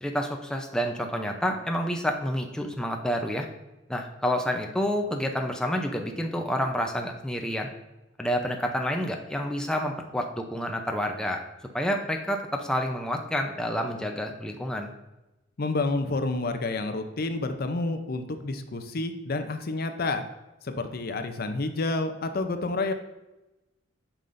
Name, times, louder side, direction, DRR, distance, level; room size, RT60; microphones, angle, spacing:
voice 1, 0.0-3.5 3.9-7.7 8.2-11.4 11.7-14.9, equal, 5° left, 2 dB, 0.6 m, -29 dB
voice 2, 15.6-20.2 20.6-22.9, left 2 dB, 55° left, 8 dB, 0.6 m, -29 dB
8.8 x 5.5 x 2.6 m, 0.99 s
head